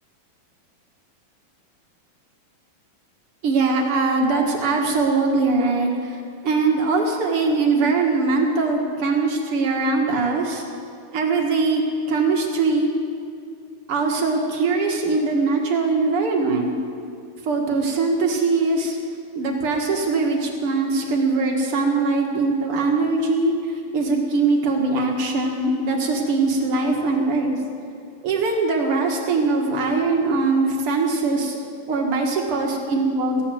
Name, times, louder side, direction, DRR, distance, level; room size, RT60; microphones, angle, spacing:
voice 1, 3.4-10.6 11.1-11.8 12.1-12.9 13.9-16.7 17.4-19.0 19.3-27.6 28.2-31.6 31.9-33.4, right 3 dB, 50° right, 1 dB, 2.0 m, -21 dB
15.5 x 11.0 x 7.7 m, 2.4 s
omnidirectional pair, 4.2 m